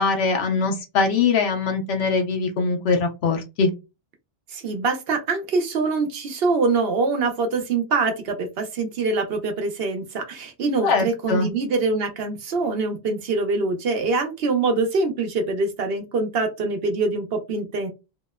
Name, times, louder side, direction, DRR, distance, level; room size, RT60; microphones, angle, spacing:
voice 1, 0.0-3.7 10.8-11.5, left 4 dB, 80° left, 4 dB, 0.9 m, -22 dB
voice 2, 4.5-17.9, right 3 dB, 70° right, 5 dB, 0.9 m, -24 dB
2.8 x 2.0 x 2.2 m, 0.25 s
omnidirectional pair, 1.1 m